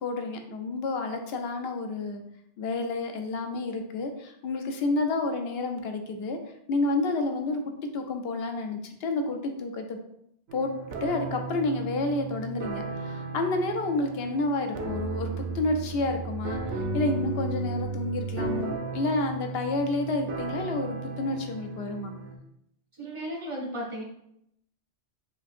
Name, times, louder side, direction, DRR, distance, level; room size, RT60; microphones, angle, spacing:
voice 1, 0.0-2.2 2.6-6.4 6.7-7.6 7.9-10.0 10.5-10.7 11.0-22.1, left 2 dB, 65° left, 5 dB, 0.7 m, -30 dB
sound 1, 10.5-22.4, right 4 dB, 70° right, 0.8 m, -35 dB
voice 2, 22.9-24.0, equal, 35° right, -2 dB, 0.5 m, -35 dB
5.0 x 2.7 x 2.5 m, 0.75 s
omnidirectional pair, 1.2 m